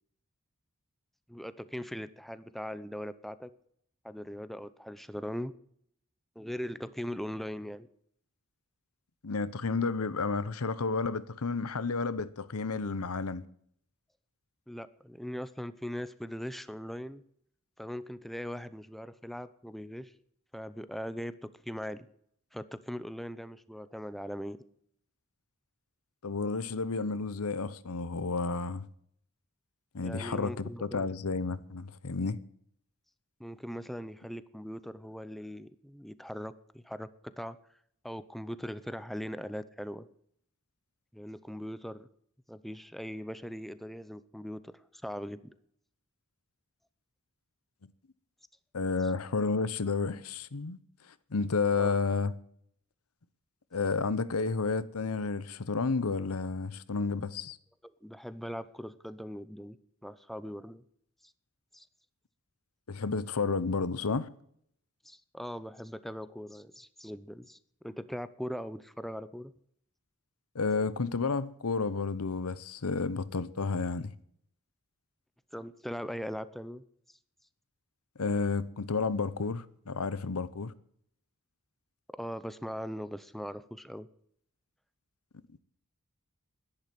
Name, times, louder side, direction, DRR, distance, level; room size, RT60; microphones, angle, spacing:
voice 1, 1.3-3.5 4.0-5.5 6.4-7.9 14.7-17.2 17.8-20.1 20.5-21.3 21.6-22.1 22.5-24.6 30.0-31.0 33.4-37.1 37.4-37.6 38.0-40.1 41.1-42.1 42.5-44.7 45.0-45.5 51.7-52.0 57.8-59.8 60.0-60.8 61.7-61.9 65.0-67.6 67.8-69.5 75.5-76.8 82.2-84.1, equal, ahead, 0.7 m, -40 dB
voice 2, 9.2-13.4 26.2-28.9 29.9-32.4 48.7-50.8 51.3-52.3 53.7-57.6 62.9-64.3 70.5-74.1 78.2-80.7, left 4 dB, 75° left, 0.8 m, -31 dB
11.5 x 11.0 x 7.6 m
head